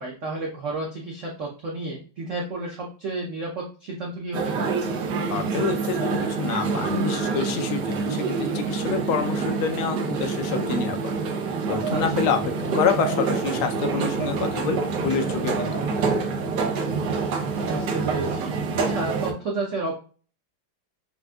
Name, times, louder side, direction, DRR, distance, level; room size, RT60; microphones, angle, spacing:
voice 1, 0.0-4.7 11.9-12.0 17.6-19.9, right 2 dB, 90° right, -2 dB, 0.6 m, -31 dB
sound 1, 4.3-19.3, right 4 dB, 65° right, 1.2 m, -26 dB
voice 2, 5.3-11.1 11.7-12.4 12.7-16.2, left 6 dB, 80° left, 6 dB, 1.5 m, -27 dB
5.8 x 2.5 x 2.3 m, 0.39 s
omnidirectional pair, 2.3 m